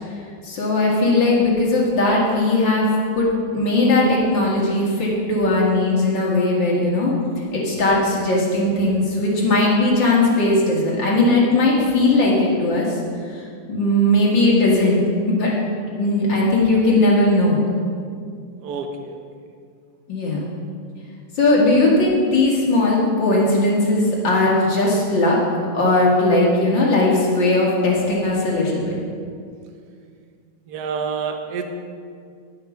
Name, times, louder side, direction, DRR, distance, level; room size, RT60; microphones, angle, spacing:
voice 1, 0.4-2.9 3.1-3.3 3.5-7.1 7.5-13.0 13.3-13.4 13.7-15.5 16.0-17.6 20.1-20.4 21.4-25.4 25.7-29.0, left 2 dB, 90° left, -4 dB, 2.6 m, -18 dB
voice 2, 30.7-31.7, right 6 dB, 65° right, 5 dB, 1.4 m, -27 dB
10.5 x 6.5 x 5.7 m, 2.2 s
omnidirectional pair, 1.9 m